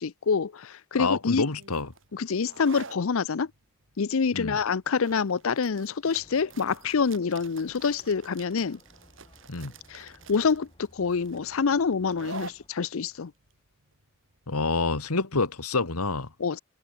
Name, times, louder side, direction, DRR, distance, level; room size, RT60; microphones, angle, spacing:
voice 1, 0.0-1.4 2.1-3.5 4.0-8.8 9.9-13.3 16.4-16.6, left 5 dB, 65° left, 0.5 m, -26 dB
voice 2, 1.0-1.9 4.3-4.6 9.5-9.7 14.5-16.3, left 3 dB, 90° left, 1.8 m, -27 dB
sound 1, 1.6-15.0, right 4 dB, 60° right, 3.8 m, -47 dB
sound 2, 6.1-12.7, left 1 dB, 20° left, 7.2 m, -58 dB
head